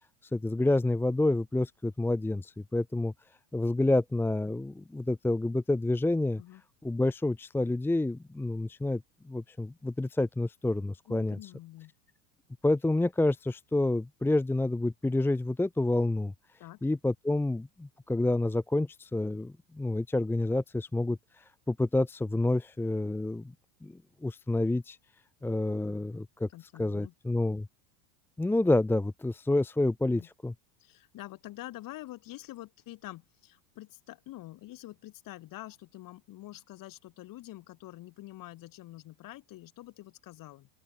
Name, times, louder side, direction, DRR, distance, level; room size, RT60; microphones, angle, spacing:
voice 1, 0.2-3.1 3.5-6.4 6.8-11.5 12.6-16.3 16.8-23.5 23.8-25.0 25.4-26.5 26.8-27.7 28.4-30.5, left 2 dB, 5° left, 0.8 m, -28 dB
voice 2, 11.1-11.9 16.6-16.9 26.5-27.1 30.1-30.3 30.8-40.7, left 16 dB, 45° left, 7.8 m, -46 dB
open air
supercardioid pair, 125°, 46 cm